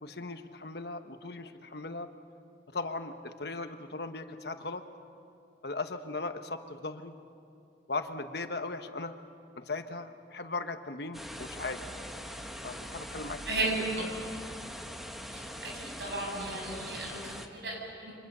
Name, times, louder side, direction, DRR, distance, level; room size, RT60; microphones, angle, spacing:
voice 1, 0.0-2.1 2.7-4.8 5.6-7.2 7.9-9.2 9.6-11.8 12.6-14.1, left 3 dB, 60° left, 8 dB, 1.2 m, -38 dB
sound 1, 11.1-17.5, equal, ahead, 1.2 m, -42 dB
voice 2, 13.5-14.1 15.7-18.1, right 2 dB, 65° right, 0 dB, 7.1 m, -34 dB
29.5 x 25.0 x 6.9 m, 2.6 s
head